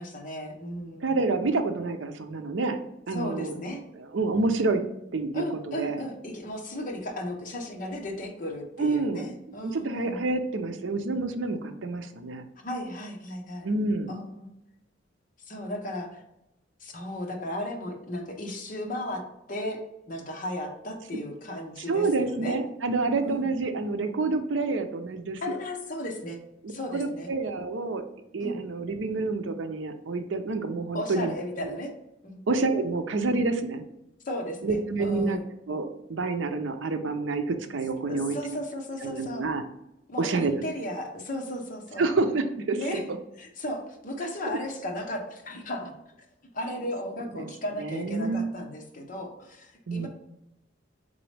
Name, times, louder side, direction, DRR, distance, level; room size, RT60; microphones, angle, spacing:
voice 1, 0.0-1.2 3.1-3.8 5.3-10.2 12.6-13.7 14.1-14.5 15.4-16.2 16.8-19.2 19.5-19.8 20.1-22.6 23.2-23.5 25.4-26.4 26.7-27.3 28.4-28.6 30.9-31.9 32.2-32.4 34.2-35.5 38.1-39.5 40.1-42.1 42.8-43.0 43.4-45.9 46.5-50.1, left 1 dB, 45° left, 2 dB, 0.9 m, -35 dB
voice 2, 1.0-2.8 3.1-3.5 4.1-4.8 5.1-6.0 8.8-9.3 9.6-12.4 13.6-14.1 21.9-25.6 26.9-28.0 28.3-31.3 32.5-33.8 34.6-35.4 35.7-38.4 39.0-39.6 40.2-40.6 42.0-43.2 44.5-44.6 47.3-47.5 47.8-48.5 49.9-50.1, right 3 dB, 85° right, 7 dB, 0.6 m, -28 dB
4.0 x 3.8 x 3.3 m, 0.87 s
head